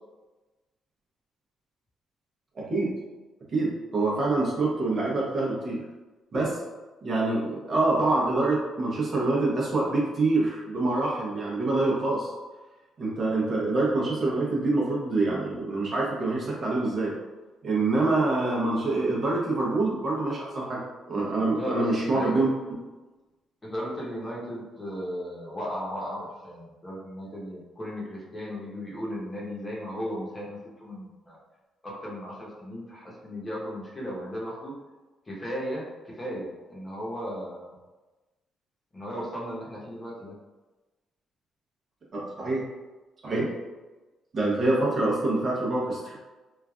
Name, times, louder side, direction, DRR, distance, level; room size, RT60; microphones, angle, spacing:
voice 1, 2.5-3.0 3.5-5.8 6.3-6.6 7.0-12.3 13.0-17.1 17.6-20.8 21.1-22.5 42.1-42.7 43.2-43.5 44.3-46.2, right 2 dB, 45° right, -4 dB, 0.9 m, -26 dB
voice 2, 21.5-22.4 23.6-31.4 31.8-34.7 35.2-37.7 38.9-40.4, equal, 25° left, -5 dB, 0.9 m, -36 dB
3.2 x 2.4 x 2.4 m, 1.2 s
cardioid pair, 90°, 0 cm